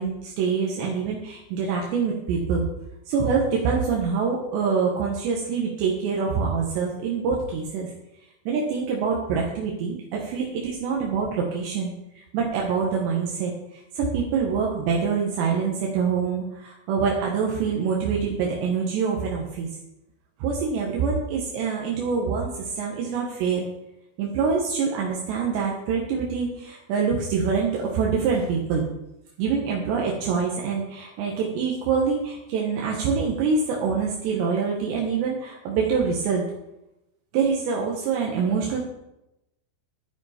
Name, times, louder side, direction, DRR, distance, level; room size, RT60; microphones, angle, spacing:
voice 1, 0.0-2.7 3.1-7.9 8.5-13.5 14.0-19.7 20.4-23.7 24.2-28.9 29.4-36.4 37.3-38.8, right 5 dB, 80° right, -2 dB, 3.5 m, -25 dB
10.5 x 9.9 x 4.3 m, 0.90 s
omnidirectional pair, 4.9 m